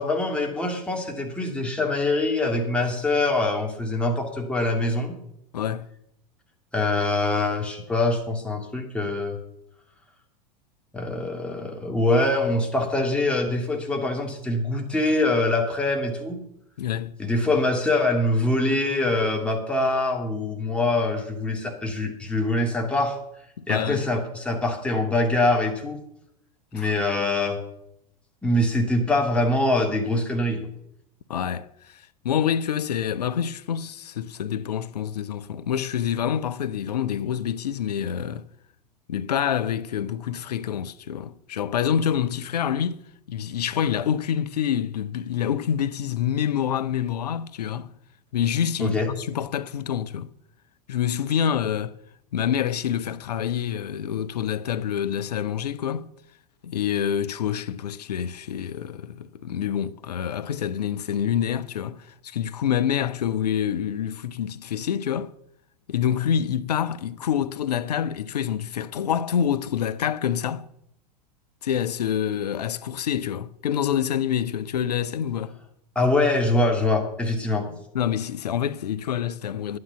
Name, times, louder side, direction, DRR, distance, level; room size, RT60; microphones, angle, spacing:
voice 1, 0.0-5.1 6.7-9.4 10.9-16.4 17.2-23.2 23.7-26.0 26.7-27.6 28.4-30.6 48.8-49.1 75.9-77.7, left 2 dB, 5° left, 2.5 m, -24 dB
voice 2, 5.5-5.9 16.8-17.1 23.6-24.0 26.8-26.9 31.3-38.5 39.1-43.0 43.3-47.9 48.3-50.3 50.9-52.0 52.3-56.1 56.6-65.3 65.9-70.7 71.6-75.6 77.7-79.8, left 9 dB, 70° left, 0.6 m, -27 dB
11.0 x 9.6 x 5.8 m
figure-of-eight pair, 85°, 21 cm